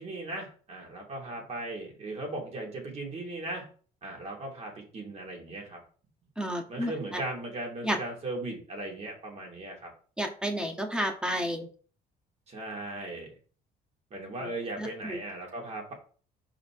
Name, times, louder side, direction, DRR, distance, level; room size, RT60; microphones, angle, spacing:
voice 1, 0.0-3.6 4.0-5.8 6.7-9.9 12.5-13.3 14.1-15.9, right 2 dB, 40° right, -1 dB, 3.1 m, -38 dB
voice 2, 6.4-7.2 7.8-8.0 10.2-11.7 14.4-14.5 14.8-15.2, equal, 5° right, 3 dB, 1.6 m, -31 dB
5.5 x 5.0 x 4.8 m, 0.41 s
cardioid pair, 110°, 17 cm